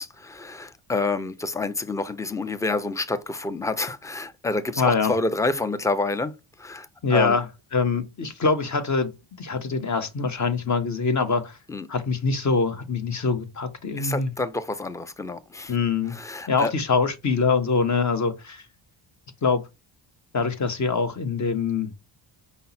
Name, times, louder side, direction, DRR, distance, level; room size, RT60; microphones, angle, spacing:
voice 1, 0.0-7.4 11.7-11.9 14.0-15.7 16.1-16.7, left 3 dB, 5° left, 0.4 m, -28 dB
voice 2, 4.8-5.1 7.0-7.4 7.7-9.1 9.4-11.6 11.9-14.3 15.7-16.1 16.5-18.6 19.4-19.6 20.3-21.9, left 4 dB, 40° left, 0.9 m, -24 dB
5.4 x 2.0 x 4.0 m
cardioid pair, 70°, 47 cm